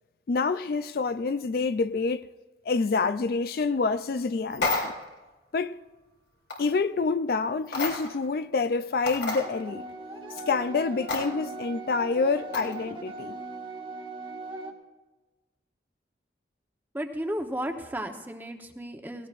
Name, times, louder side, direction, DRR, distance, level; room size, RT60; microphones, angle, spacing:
voice 1, 0.3-2.3 2.7-4.9 5.5-5.8 6.6-9.9 10.5-13.4, left 4 dB, 55° left, 0.4 m, -27 dB
sound 1, 4.5-5.1 6.5-6.7 7.7-8.2 8.6-8.7 9.1-9.4 11.1-11.2 12.5-12.8, left 3 dB, 80° left, 3.5 m, -30 dB
sound 2, 9.3-14.7, right 2 dB, 30° right, 1.4 m, -39 dB
voice 2, 16.9-19.3, equal, 10° right, 0.9 m, -34 dB
18.5 x 16.5 x 2.5 m
head